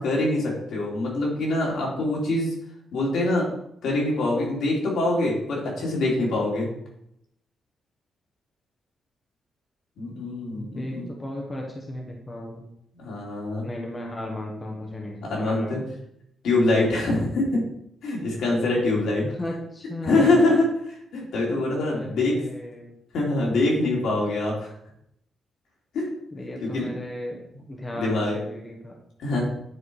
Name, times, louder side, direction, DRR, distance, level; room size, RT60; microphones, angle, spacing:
voice 1, 0.0-2.5 2.9-3.4 3.8-6.7 10.0-11.1 13.0-13.6 15.2-15.8 16.4-17.6 18.0-19.2 20.0-20.7 21.1-22.3 23.1-24.7 25.9-26.1 26.7-26.9 27.9-28.4 29.2-29.4, left 2 dB, 75° left, -3 dB, 3.4 m, -24 dB
voice 2, 10.5-12.7 13.6-15.8 17.1-17.2 19.2-20.6 21.9-22.9 26.3-29.0, left 1 dB, 15° left, 0 dB, 1.2 m, -35 dB
9.7 x 4.7 x 4.8 m, 0.75 s
wide cardioid pair, 170°, 0 cm